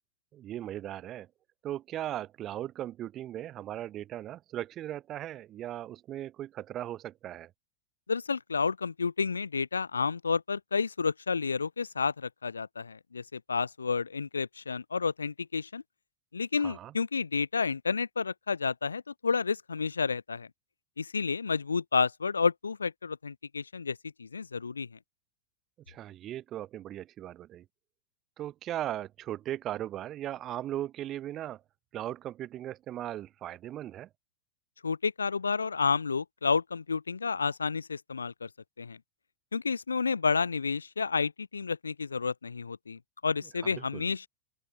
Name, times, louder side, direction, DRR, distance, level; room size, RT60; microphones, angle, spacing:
voice 1, 0.3-1.3 1.6-7.5 16.6-16.9 25.9-27.6 28.4-31.6 31.9-34.1 43.6-44.1, right 12 dB, 30° right, 4.4 m, -38 dB
voice 2, 8.1-15.8 16.3-20.5 21.0-24.9 34.8-38.5 38.8-39.0 39.5-44.3, left 5 dB, 75° left, 1.1 m, -30 dB
open air
figure-of-eight pair, 90°, 0 cm